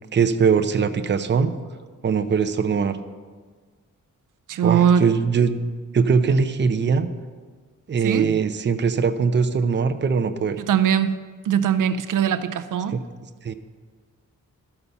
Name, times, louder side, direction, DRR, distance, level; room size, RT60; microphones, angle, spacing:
voice 1, 0.1-1.5 2.0-3.0 4.6-5.6 5.9-7.1 7.9-10.6 12.9-13.0 13.4-13.5, right 5 dB, 35° right, 9 dB, 0.6 m, -21 dB
voice 2, 4.5-5.1 8.0-8.4 10.7-11.1 11.5-13.0, right 8 dB, 75° right, 10 dB, 0.5 m, -20 dB
12.5 x 5.7 x 6.8 m, 1.5 s
wide cardioid pair, 150°, 32 cm